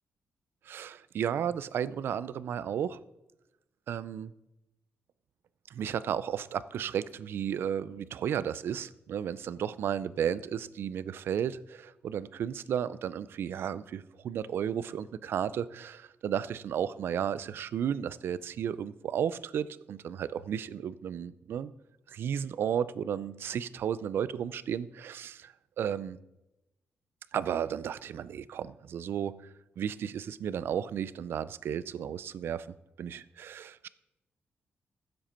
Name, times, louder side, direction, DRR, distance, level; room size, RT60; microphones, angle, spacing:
voice 1, 0.7-3.0 3.9-4.3 5.7-21.7 22.1-26.2 27.3-29.5 29.8-32.7 33.0-33.9, right 8 dB, 60° right, 17 dB, 0.4 m, -33 dB
15.0 x 7.8 x 4.4 m, 0.93 s
wide cardioid pair, 180°, 4 cm